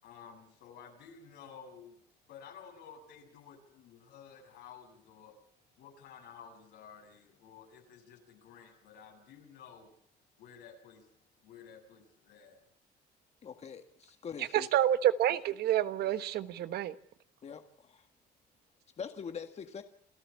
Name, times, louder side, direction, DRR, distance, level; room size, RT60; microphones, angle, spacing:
voice 1, 0.0-5.4 5.8-9.9 10.4-11.1 11.4-12.6, left 7 dB, 80° left, 7.3 m, -53 dB
voice 2, 13.4-14.7 17.4-18.1 19.0-19.8, left 6 dB, 40° left, 1.7 m, -43 dB
voice 3, 14.5-16.9, right 11 dB, 70° right, 1.4 m, -28 dB
28.5 x 13.5 x 8.4 m
cardioid pair, 110°, 17 cm